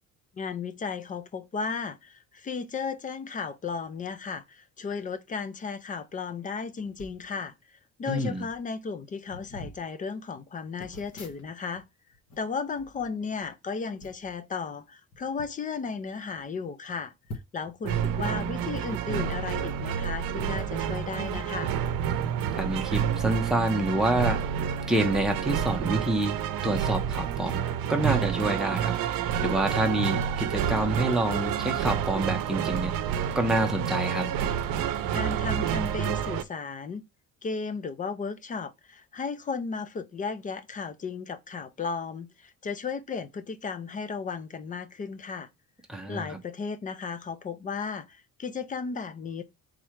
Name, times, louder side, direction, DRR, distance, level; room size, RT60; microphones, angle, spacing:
voice 1, 0.4-11.8 12.4-21.8 35.1-37.0 37.4-45.5 46.1-49.4, left 5 dB, 25° left, 0.4 m, -35 dB
sound 1, 6.9-7.2 8.1-8.2 8.4-8.7 9.2-9.8 10.8-11.8 12.1-13.5 14.0-14.3 15.1-15.5 16.0-16.1 16.4-16.5 17.2-17.7 18.8-19.0 20.4-20.6 21.2-22.7 23.0-23.1 23.8-25.0 25.5-25.7, equal, 45° left, 1.1 m, -46 dB
voice 2, 8.1-8.4 22.5-24.4 24.9-26.3 26.6-27.6 27.9-29.0 29.4-32.9 33.4-34.3 45.9-46.3, right 1 dB, ahead, 0.7 m, -27 dB
sound 2, 17.8-36.4, right 9 dB, 75° right, 0.7 m, -29 dB
3.7 x 3.1 x 4.5 m
cardioid pair, 180°, 35 cm